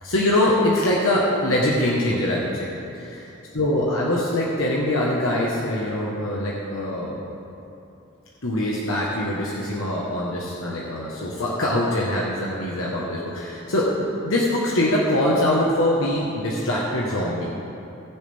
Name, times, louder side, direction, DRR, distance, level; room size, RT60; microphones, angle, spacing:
voice 1, 0.0-2.7 3.0-3.3 3.5-7.2 8.4-17.5, left 1 dB, 85° left, -4 dB, 1.3 m, -23 dB
19.5 x 6.9 x 3.5 m, 2.8 s
head